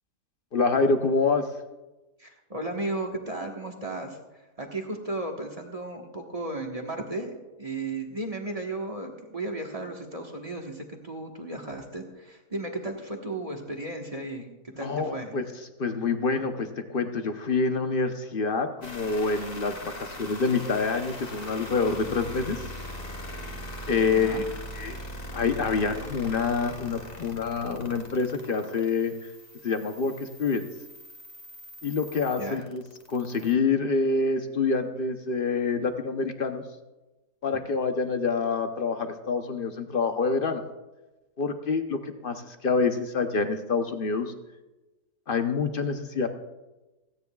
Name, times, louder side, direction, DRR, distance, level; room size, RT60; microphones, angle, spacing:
voice 1, 0.5-1.5 14.8-15.5 15.8-22.7 23.9-24.4 24.7-25.0 25.3-29.3 29.6-30.6 31.8-32.8 33.1-36.6 37.4-40.6 41.4-44.3 45.3-46.3, left 4 dB, 45° left, 7 dB, 0.7 m, -27 dB
voice 2, 2.2-4.2 4.6-15.3 24.0-24.4 32.4-32.6, right 2 dB, 25° right, 2 dB, 1.2 m, -35 dB
sound 1, 18.8-33.5, left 1 dB, 25° left, 1.3 m, -41 dB
28.0 x 9.4 x 2.3 m, 1.1 s
omnidirectional pair, 1.7 m